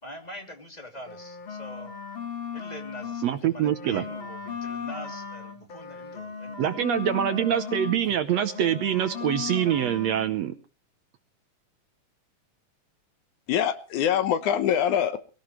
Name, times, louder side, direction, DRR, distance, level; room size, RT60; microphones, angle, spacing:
voice 1, 0.0-1.9 2.5-6.6 8.0-8.1, left 1 dB, 15° left, 3 dB, 2.5 m, -43 dB
sound 1, 1.0-3.3 3.6-8.0 8.3-10.3, left 6 dB, 45° left, 2.3 m, -37 dB
voice 2, 3.2-4.0 6.6-10.5, right 10 dB, 70° right, 9 dB, 1.8 m, -25 dB
voice 3, 13.5-15.2, left 9 dB, 75° left, 12 dB, 2.3 m, -24 dB
23.5 x 15.0 x 3.2 m, 0.38 s
omnidirectional pair, 3.7 m